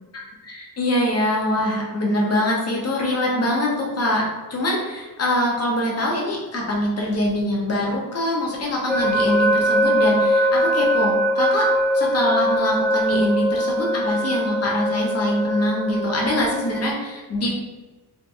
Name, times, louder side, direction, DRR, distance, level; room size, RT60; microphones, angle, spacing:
voice 1, 0.4-17.5, left 1 dB, 40° left, -2 dB, 0.7 m, -23 dB
sound 1, 8.9-16.9, equal, 5° right, 0.5 m, -21 dB
2.7 x 2.5 x 2.4 m, 1.2 s
wide cardioid pair, 120°, 40 cm